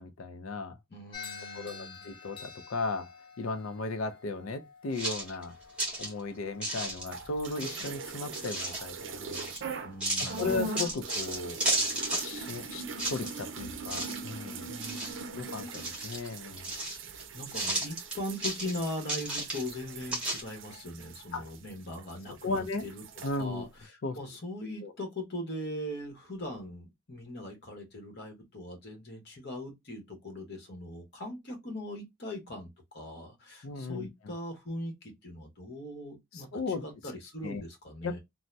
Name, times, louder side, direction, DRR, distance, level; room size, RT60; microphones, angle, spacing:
voice 1, 0.0-0.8 1.5-5.6 6.0-9.5 10.2-11.6 12.2-14.7 15.3-16.7 21.3-21.5 22.3-22.8 23.2-23.6 24.0-24.2 24.8-24.9 33.6-34.1 36.3-36.8 37.4-37.6 38.0-38.2, left 3 dB, 80° left, 0.5 m, -36 dB
voice 2, 0.9-2.0 9.8-10.6 14.7-15.4 17.3-23.0 23.4-38.2, left 1 dB, 50° left, 1.0 m, -40 dB
sound 1, 1.1-9.5, left 5 dB, 25° left, 0.6 m, -50 dB
sound 2, 5.0-6.1 6.6-7.2 7.6-8.9 9.3-9.6 10.0-12.6 12.9-13.6 13.9-14.3 14.6-15.4 15.7-17.2 17.5-19.8 20.1-20.4, right 2 dB, 5° right, 1.0 m, -33 dB
sound 3, 7.0-9.9 10.2-22.1 22.4-23.4, right 4 dB, 60° right, 0.5 m, -41 dB
2.7 x 2.0 x 3.2 m
head